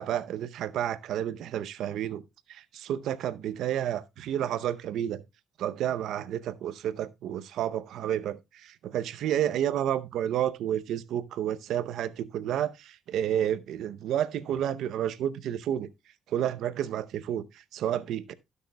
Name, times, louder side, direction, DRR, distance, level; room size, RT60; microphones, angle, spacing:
voice 1, 0.0-2.2 2.5-5.2 5.6-15.9 16.3-18.3, right 10 dB, 80° right, 0.6 m, -30 dB
17.5 x 6.4 x 2.2 m
cardioid pair, 90°, 0 cm